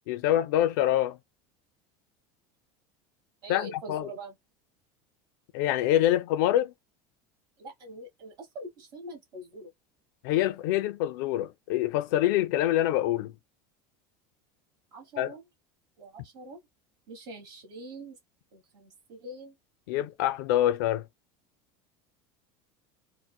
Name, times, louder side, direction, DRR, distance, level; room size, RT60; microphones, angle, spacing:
voice 1, 0.1-1.2 3.5-4.1 5.5-6.7 10.2-13.3 15.2-15.3 19.9-21.1, left 13 dB, 65° left, 0.5 m, -25 dB
voice 2, 3.4-4.3 7.6-9.7 14.9-15.4 16.0-16.6 17.1-18.2 18.5-19.5, right 1 dB, 40° right, 1.4 m, -43 dB
3.8 x 2.2 x 2.3 m
cardioid pair, 165°, 11 cm